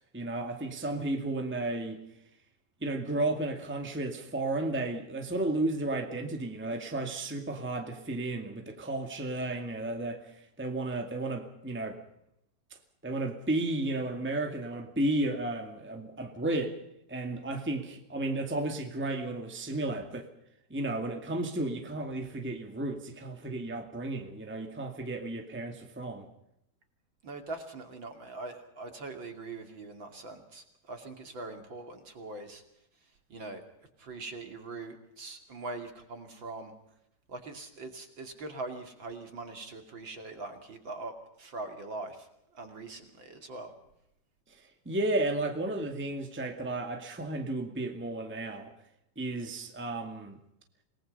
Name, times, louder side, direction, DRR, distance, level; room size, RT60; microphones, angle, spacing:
voice 1, 0.1-2.0 2.8-12.0 13.0-16.7 17.1-20.3 20.7-26.3 44.6-48.7 49.1-50.4, right 2 dB, 10° right, 4 dB, 0.5 m, -33 dB
voice 2, 27.2-32.6 33.3-33.6 34.0-36.7 37.3-41.1 41.4-42.3 42.5-43.7, right 3 dB, 35° right, 6 dB, 2.6 m, -42 dB
28.0 x 19.0 x 5.4 m, 0.79 s
omnidirectional pair, 4.6 m